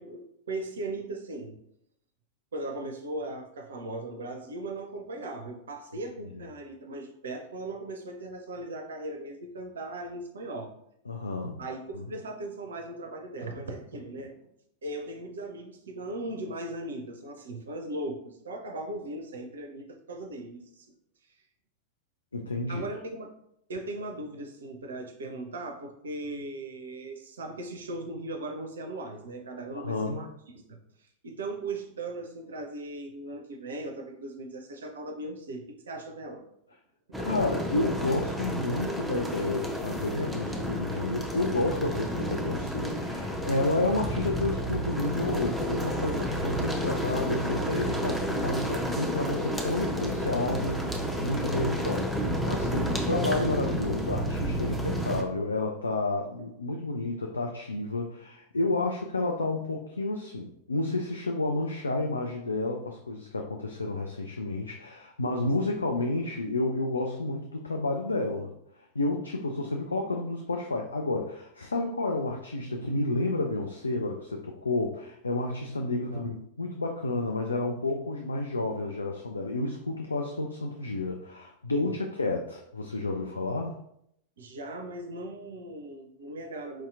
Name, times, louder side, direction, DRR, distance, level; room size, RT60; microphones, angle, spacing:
voice 1, 0.0-1.6 2.5-10.7 11.6-14.4 14.8-20.9 22.7-23.3 23.7-30.3 30.5-30.8 31.2-36.4 37.1-37.2 52.7-53.1 65.4-65.5 76.1-76.3 81.7-81.9 84.4-86.9, right 2 dB, 65° right, 4 dB, 0.4 m, -38 dB
voice 2, 11.1-11.6 22.3-22.8 29.7-30.2 37.2-68.5 69.0-83.8, left 2 dB, 75° left, 2 dB, 0.3 m, -30 dB
sound 1, 37.1-55.2, equal, ahead, 0.5 m, -31 dB
4.5 x 2.8 x 2.4 m, 0.73 s
figure-of-eight pair, 90°, 0 cm